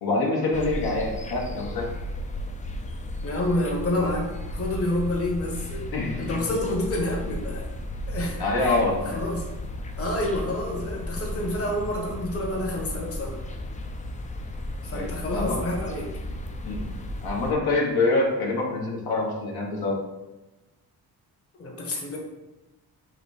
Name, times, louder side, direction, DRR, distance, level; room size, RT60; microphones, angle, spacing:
voice 1, 0.0-1.9 5.9-6.4 8.4-9.2 14.9-15.6 16.7-16.8 17.2-20.0, left 2 dB, 75° left, -2 dB, 1.1 m, -25 dB
sound 1, 0.5-17.5, left 1 dB, 20° left, 0.4 m, -34 dB
voice 2, 3.2-5.9 6.2-7.7 8.1-9.5 10.0-13.4 14.8-16.1 21.6-22.2, left 1 dB, 40° left, -1 dB, 1.0 m, -28 dB
3.9 x 2.7 x 4.7 m, 1.0 s
cardioid pair, 115°, 38 cm